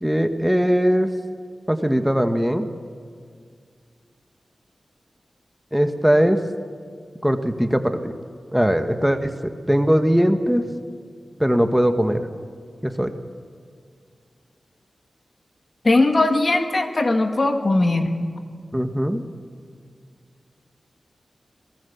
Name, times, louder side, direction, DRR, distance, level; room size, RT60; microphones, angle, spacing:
voice 1, 0.0-1.1 1.7-2.7 5.7-6.4 7.2-8.1 8.5-10.7 11.4-12.3 12.8-13.2 18.7-19.2, equal, 5° right, 7 dB, 1.5 m, -20 dB
voice 2, 15.8-18.1, left 2 dB, 45° left, 6 dB, 2.2 m, -19 dB
27.5 x 18.5 x 7.1 m, 2.1 s
cardioid pair, 55°, 0 cm